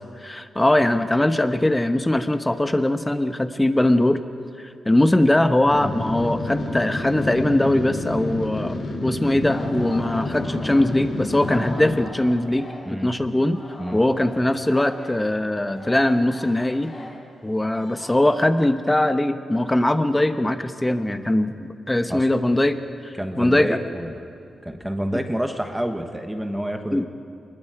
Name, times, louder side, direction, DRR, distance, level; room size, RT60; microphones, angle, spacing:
voice 1, 0.2-4.2 4.6-13.6 13.9-16.9 17.4-23.1 23.4-23.8 26.9-27.0, left 1 dB, 10° left, 9 dB, 1.0 m, -21 dB
sound 1, 5.7-12.0, left 2 dB, 70° left, 4.1 m, -29 dB
Singing, 9.5-13.1 13.4-18.3, left 1 dB, 35° left, 4.6 m, -41 dB
voice 2, 23.2-24.3 24.6-27.1, equal, 5° right, 5 dB, 1.2 m, -28 dB
26.0 x 21.0 x 5.0 m, 2.6 s
wide cardioid pair, 125°, 0 cm